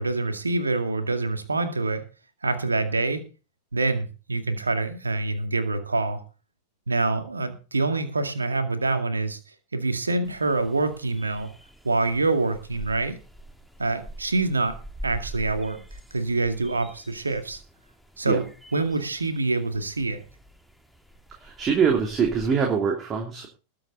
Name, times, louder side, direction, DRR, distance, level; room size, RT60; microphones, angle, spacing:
voice 1, 0.0-2.0 2.4-3.2 3.7-6.2 6.9-9.4 9.7-11.5 11.8-13.2 13.8-14.7 15.0-15.8 16.1-17.6 18.2-20.2, right 3 dB, 80° right, 8 dB, 2.1 m, -26 dB
sound 1, 10.2-22.5, right 1 dB, ahead, 2.2 m, -45 dB
voice 2, 21.4-23.5, right 6 dB, 25° right, 1 dB, 3.0 m, -23 dB
20.5 x 7.8 x 4.1 m, 0.33 s
figure-of-eight pair, 90°, 0 cm